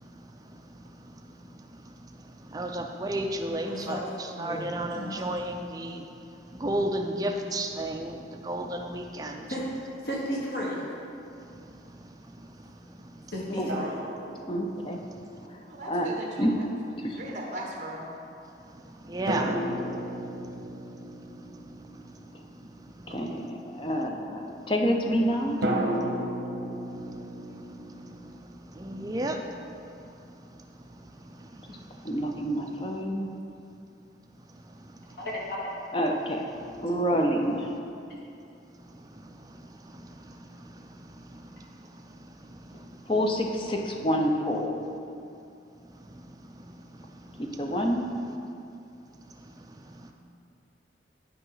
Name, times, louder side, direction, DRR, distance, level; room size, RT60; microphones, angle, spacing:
voice 1, 2.5-6.0 6.6-9.4 19.1-19.6 28.8-29.4, right 1 dB, 20° right, 4 dB, 0.4 m, -31 dB
voice 2, 3.6-4.0 4.3-5.2 9.5-9.6 10.0-10.8 13.3-13.9 35.2-35.7, equal, 60° left, -5 dB, 1.3 m, -34 dB
sound 1, 10.1-10.2 13.7-15.2 19.3-22.9 25.6-28.4, right 1 dB, 65° right, 1.0 m, -33 dB
voice 3, 14.5-15.0 15.5-16.1 16.4-16.6 17.0-17.2 23.1-25.7 31.7-31.8 32.0-33.3 35.9-36.5 36.8-37.7 43.1-44.8 47.4-48.2, equal, 30° left, 2 dB, 0.6 m, -28 dB
voice 4, 15.7-16.5 17.1-18.0 23.1-23.4, right 1 dB, 40° right, -1 dB, 1.2 m, -39 dB
10.5 x 5.1 x 3.9 m, 2.6 s
head